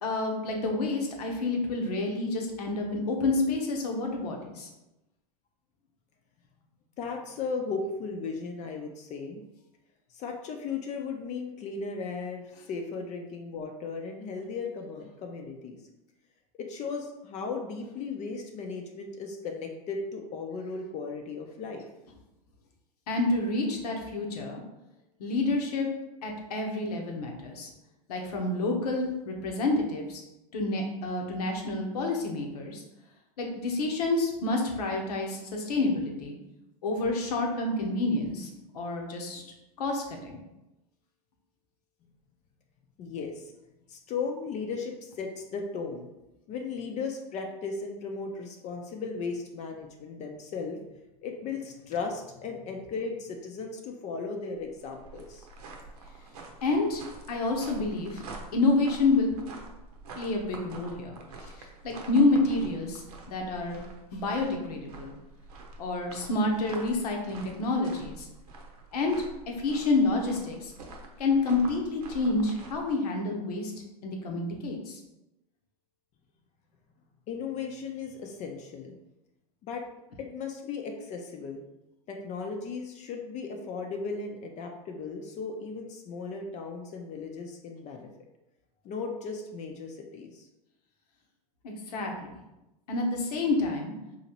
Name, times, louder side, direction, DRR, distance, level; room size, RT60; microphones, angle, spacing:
voice 1, 0.0-4.7 23.1-24.6 25.2-25.9 26.2-27.7 28.1-30.2 30.5-32.8 33.4-36.4 36.8-39.4 39.8-40.4 56.6-58.2 58.5-59.3 60.1-63.8 64.1-65.1 65.8-68.3 68.9-69.2 69.6-70.7 71.2-73.7 74.0-75.0 91.6-92.4 92.9-93.9, left 2 dB, 80° left, 1 dB, 1.0 m, -28 dB
voice 2, 7.0-9.4 10.1-15.8 16.6-21.8 43.0-43.5 43.9-46.1 46.5-50.8 51.2-55.5 77.3-78.9 79.6-79.8 80.2-81.6 82.1-88.1 88.8-90.5, left 4 dB, 35° left, 3 dB, 0.5 m, -36 dB
sound 1, 54.6-72.9, right 3 dB, 80° right, 0.8 m, -46 dB
4.0 x 2.8 x 2.9 m, 0.94 s
hypercardioid pair, 110°, 20 cm